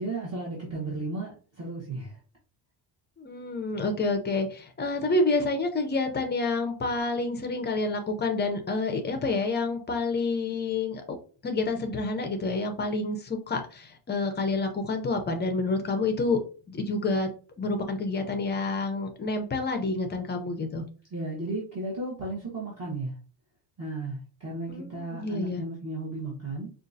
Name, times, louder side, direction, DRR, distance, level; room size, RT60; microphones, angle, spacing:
voice 1, 0.0-2.2 21.1-23.1 23.8-26.7, right 2 dB, 30° right, -6 dB, 1.2 m, -34 dB
voice 2, 3.2-11.0 11.4-16.4 16.7-17.3 17.6-20.8 24.7-25.6, left 3 dB, 25° left, 5 dB, 0.5 m, -28 dB
4.9 x 2.4 x 2.6 m, 0.37 s
cardioid pair, 160°, 48 cm